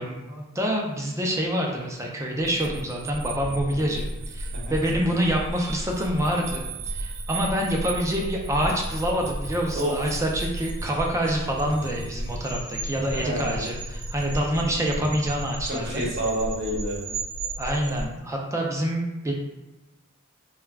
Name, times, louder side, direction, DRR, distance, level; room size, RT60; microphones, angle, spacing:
voice 1, 0.0-6.6 6.9-16.0 17.6-19.3, equal, 15° right, -1 dB, 0.4 m, -26 dB
sound 1, 2.4-18.1, right 1 dB, 80° right, 0.4 m, -34 dB
voice 2, 13.1-13.6 15.6-17.1, equal, 50° right, -4 dB, 0.8 m, -29 dB
2.3 x 2.2 x 3.3 m, 1.0 s
head